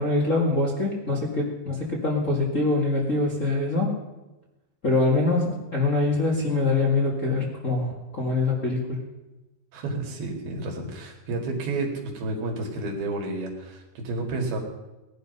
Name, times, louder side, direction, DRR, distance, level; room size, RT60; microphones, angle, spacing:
voice 1, 0.0-3.9 4.8-9.0, left 2 dB, 30° left, -3 dB, 1.7 m, -24 dB
voice 2, 9.7-14.6, right 2 dB, 80° right, 2 dB, 4.2 m, -31 dB
18.0 x 11.5 x 5.5 m, 1.0 s
omnidirectional pair, 4.4 m